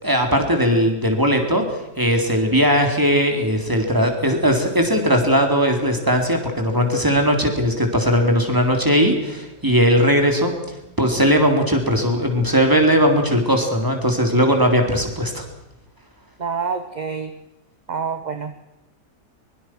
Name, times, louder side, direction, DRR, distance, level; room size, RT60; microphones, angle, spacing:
voice 1, 0.0-1.6 2.0-10.5 11.0-15.4, equal, 10° right, 4 dB, 3.8 m, -18 dB
voice 2, 16.4-17.3 17.9-18.6, right 5 dB, 30° right, 8 dB, 1.0 m, -27 dB
23.5 x 22.5 x 6.2 m, 0.94 s
omnidirectional pair, 1.7 m